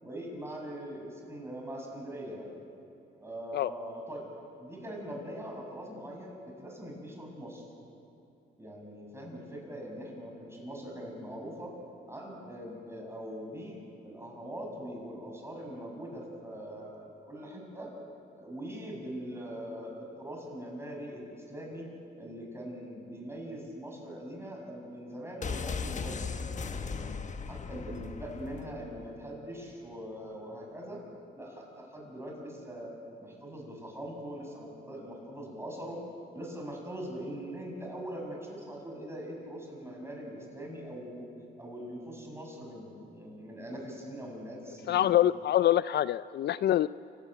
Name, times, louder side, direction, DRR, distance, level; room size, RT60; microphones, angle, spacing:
voice 1, 0.0-2.5 3.2-4.3 4.6-7.6 8.6-11.7 12.1-17.9 18.3-21.9 22.2-27.1 27.5-31.0 31.3-32.9 33.2-36.0 36.3-41.3 41.6-45.1, equal, 10° right, 0 dB, 6.8 m, -42 dB
sound 1, 25.4-29.2 29.4-29.5, left 5 dB, 40° left, 1.2 m, -37 dB
voice 2, 44.9-46.9, left 12 dB, 60° left, 16 dB, 0.4 m, -25 dB
28.5 x 13.0 x 9.1 m, 2.9 s
cardioid pair, 90°, 20 cm